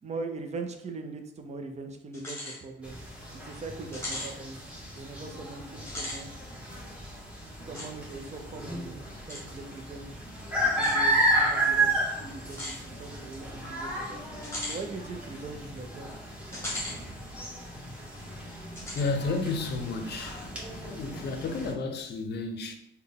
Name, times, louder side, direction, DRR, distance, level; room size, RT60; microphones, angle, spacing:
voice 1, 0.0-3.0 3.3-6.3 7.7-10.3 10.6-14.2 14.5-16.1, right 3 dB, 35° right, 0.5 m, -41 dB
sound 1, 2.1-2.6 3.0-3.1 3.9-4.3 5.8-6.2 7.7-7.9 9.3-9.4 10.7-11.0 12.5-12.8 14.4-14.8 16.5-17.0 17.4-17.5 18.8-19.1, left 1 dB, 15° left, 1.2 m, -37 dB
sound 2, 2.8-21.7, right 1 dB, 5° right, 1.2 m, -33 dB
voice 2, 18.9-20.5 20.9-22.7, left 3 dB, 60° left, 0.6 m, -32 dB
3.7 x 2.2 x 3.5 m
cardioid pair, 90°, 20 cm